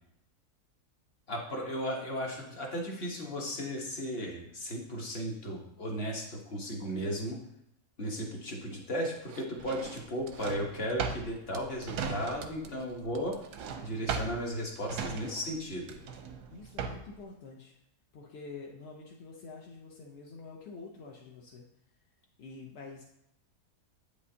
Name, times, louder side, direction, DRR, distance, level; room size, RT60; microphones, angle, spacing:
voice 1, 1.3-7.4 8.0-13.4 13.8-16.0, equal, 40° left, 0 dB, 1.2 m, -35 dB
sound 1, 9.2-10.0 10.3-10.6 10.9-14.1, right 5 dB, 65° right, 0.7 m, -52 dB
Drawer open or close, 9.6-12.7 13.0-17.2, right 6 dB, 90° right, 1.3 m, -38 dB
voice 2, 16.5-17.8 18.1-21.6 22.4-23.0, left 4 dB, 60° left, -1 dB, 0.7 m, -47 dB
8.3 x 5.0 x 2.7 m, 0.81 s
omnidirectional pair, 1.7 m